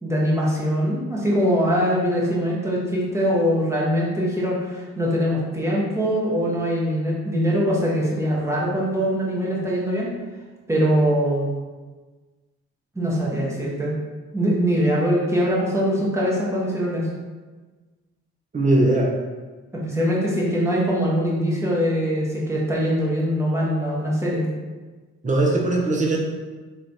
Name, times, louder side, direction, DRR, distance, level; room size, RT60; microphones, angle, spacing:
voice 1, 0.0-10.1 10.7-11.5 12.9-13.9 14.3-17.1 19.8-24.5, equal, 10° right, -5 dB, 1.3 m, -22 dB
voice 2, 18.5-19.1 25.2-26.2, right 2 dB, 25° right, -2 dB, 1.0 m, -19 dB
3.2 x 3.1 x 4.0 m, 1.3 s
cardioid pair, 90°, 30 cm